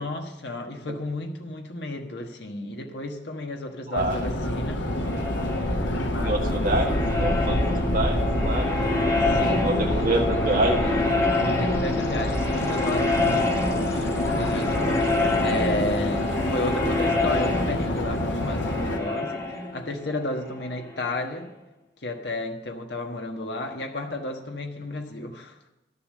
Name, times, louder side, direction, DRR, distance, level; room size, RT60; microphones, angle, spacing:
voice 1, 0.0-4.9 6.0-6.7 9.3-9.7 11.4-15.0 15.4-21.5 22.0-25.7, left 1 dB, 65° left, 1.3 m, -32 dB
voice 2, 3.9-4.4 6.2-11.0, right 2 dB, 45° right, 1.6 m, -27 dB
Subway metro underground, 4.0-19.0, left 1 dB, 85° left, 1.4 m, -27 dB
sound 1, 4.7-21.3, left 2 dB, 15° left, 1.4 m, -27 dB
11.5 x 6.9 x 7.5 m
head